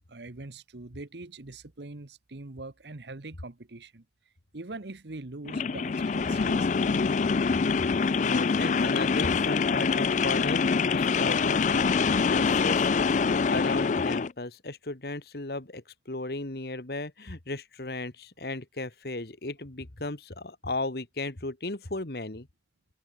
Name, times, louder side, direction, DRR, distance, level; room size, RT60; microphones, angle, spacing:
voice 1, 0.1-4.0 4.5-7.3, right 2 dB, 70° right, 1.2 m, -43 dB
sound 1, 5.4-14.3, left 5 dB, 45° left, 0.4 m, -25 dB
voice 2, 7.8-22.5, left 2 dB, 60° left, 1.8 m, -35 dB
head